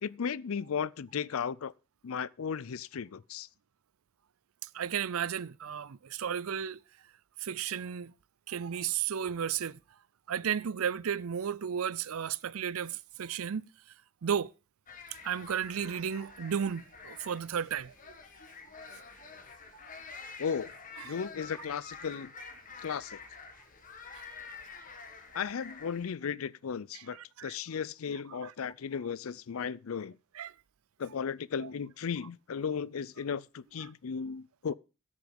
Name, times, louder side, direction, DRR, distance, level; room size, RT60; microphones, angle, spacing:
voice 1, 0.0-1.7 2.0-3.5 20.4-20.7 21.0-22.3 22.8-23.2 25.3-30.1 31.0-34.7, left 6 dB, 80° left, 0.5 m, -35 dB
voice 2, 4.7-6.8 7.4-8.1 8.5-9.8 10.3-13.6 14.2-14.5 15.2-17.9 21.0-21.2 26.9-27.6 28.3-28.5 30.3-30.5 31.6-31.7 33.8-33.9, right 8 dB, 85° right, 0.5 m, -34 dB
sound 1, 14.9-26.1, left 5 dB, 40° left, 1.8 m, -48 dB
15.0 x 6.6 x 5.2 m
head